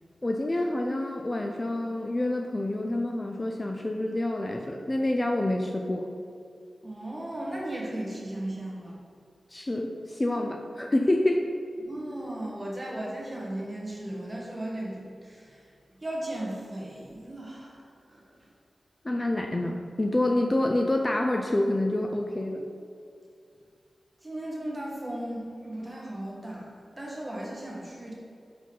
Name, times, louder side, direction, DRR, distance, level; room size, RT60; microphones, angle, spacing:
voice 1, 0.2-6.1 9.5-11.4 19.0-22.7, left 1 dB, 25° left, 2 dB, 0.4 m, -27 dB
voice 2, 6.8-9.0 11.8-15.7 16.0-18.5 24.2-28.1, right 1 dB, 20° right, -4 dB, 1.4 m, -36 dB
5.2 x 5.2 x 3.9 m, 2.4 s
wide cardioid pair, 95°, 0 cm